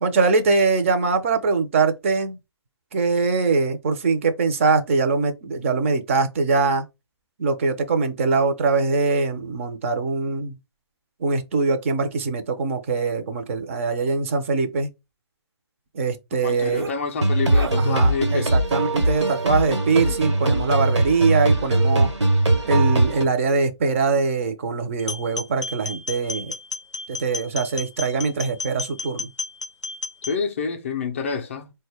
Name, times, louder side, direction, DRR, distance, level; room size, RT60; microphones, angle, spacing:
voice 1, 0.0-2.4 2.9-6.8 7.4-10.5 11.2-14.9 15.9-16.9 17.8-22.1 22.6-26.5 27.1-29.3, right 4 dB, 30° right, 0.5 m, -22 dB
voice 2, 16.3-18.8 30.3-31.7, left 5 dB, 30° left, 0.4 m, -28 dB
sound 1, 16.5-17.0 17.4-17.8 19.6-20.2, right 5 dB, 60° right, 0.9 m, -34 dB
sound 2, 17.2-23.2, right 1 dB, 80° right, 1.1 m, -20 dB
sound 3, 25.0-30.4, left 4 dB, 90° left, 0.4 m, -32 dB
4.0 x 2.2 x 3.3 m
figure-of-eight pair, 140°, 15 cm